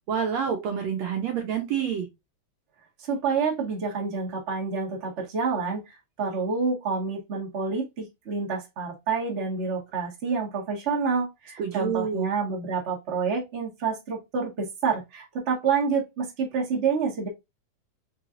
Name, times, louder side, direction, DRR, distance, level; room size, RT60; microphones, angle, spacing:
voice 1, 0.1-2.1 11.6-12.3, right 7 dB, 70° right, 1.9 m, -28 dB
voice 2, 3.0-17.3, right 5 dB, 30° right, 1.6 m, -28 dB
4.5 x 3.9 x 2.6 m
omnidirectional pair, 3.5 m